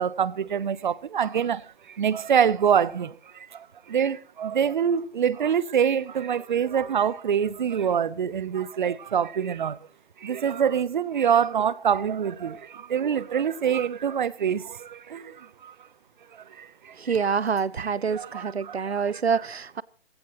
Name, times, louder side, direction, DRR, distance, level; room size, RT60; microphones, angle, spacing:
voice 1, 0.0-9.8 10.2-15.7 16.3-17.2 17.8-19.2, right 8 dB, 50° right, 0.9 m, -26 dB
voice 2, 17.0-19.8, right 6 dB, 85° right, 0.8 m, -26 dB
18.0 x 17.0 x 3.0 m
figure-of-eight pair, 145°, 31 cm